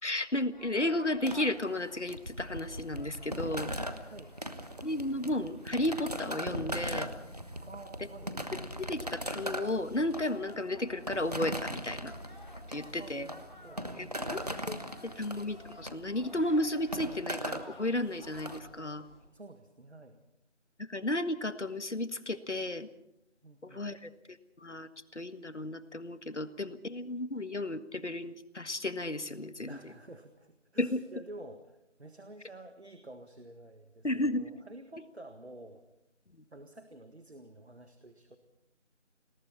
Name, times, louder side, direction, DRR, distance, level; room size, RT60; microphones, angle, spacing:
voice 1, 0.0-3.7 4.8-7.1 8.8-12.1 12.7-13.3 14.0-19.0 20.8-22.9 23.6-29.9 30.8-31.0 34.0-34.4 36.4-36.5, left 1 dB, 70° left, 11 dB, 1.7 m, -33 dB
sound 1, 0.5-18.6, left 1 dB, 40° left, 2.9 m, -54 dB
sound 2, 1.3-18.6, equal, 35° right, 1.2 m, -39 dB
voice 2, 4.0-4.3 7.6-8.3 12.8-14.4 19.3-20.2 23.4-23.9 29.7-35.9 36.5-38.4, right 2 dB, 60° right, 8 dB, 1.8 m, -50 dB
sound 3, 8.4-19.2, equal, 10° right, 4.8 m, -58 dB
30.0 x 21.5 x 4.3 m, 0.82 s
figure-of-eight pair, 175°, 36 cm